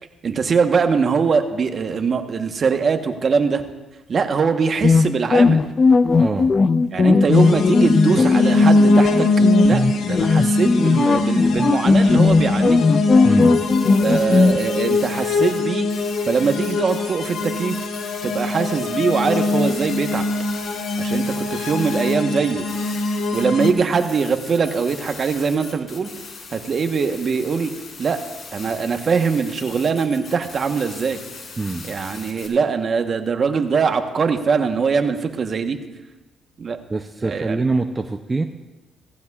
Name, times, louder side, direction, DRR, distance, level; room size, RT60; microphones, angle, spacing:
voice 1, 0.2-3.6 4.1-5.6 6.9-9.3 9.6-12.8 14.0-15.9 16.3-17.8 18.2-20.2 21.0-22.6 23.3-26.1 26.5-27.7 28.0-28.2 28.5-31.2 31.8-35.8 36.6-36.8 37.2-37.6, right 5 dB, 45° right, 6 dB, 1.1 m, -22 dB
sound 1, 4.8-14.6, left 4 dB, 35° left, 0.5 m, -17 dB
voice 2, 6.2-6.5 13.2-13.6 31.6-31.9 36.9-38.4, right 3 dB, 25° right, 6 dB, 0.6 m, -24 dB
sound 2, 7.3-23.7, left 2 dB, 70° left, 1.4 m, -21 dB
sound 3, 13.4-15.6 15.9-32.5, left 4 dB, 55° left, 3.1 m, -39 dB
17.5 x 15.0 x 2.4 m, 1.1 s
cardioid pair, 90°, 0 cm